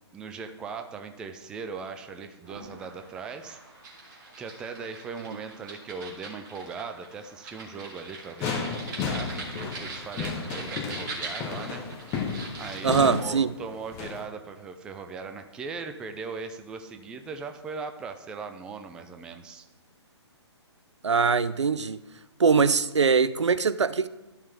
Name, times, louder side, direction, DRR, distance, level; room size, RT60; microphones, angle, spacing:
voice 1, 0.1-3.6 4.4-11.8 12.6-19.7, right 5 dB, 5° right, 0.3 m, -39 dB
sound 1, 2.4-13.0, right 3 dB, 40° right, 2.6 m, -42 dB
sound 2, 8.4-14.3, left 5 dB, 20° left, 0.9 m, -33 dB
voice 2, 12.8-13.5 21.0-22.0 22.4-24.1, right 5 dB, 80° right, 0.4 m, -22 dB
12.5 x 5.6 x 3.4 m
figure-of-eight pair, 130°, 15 cm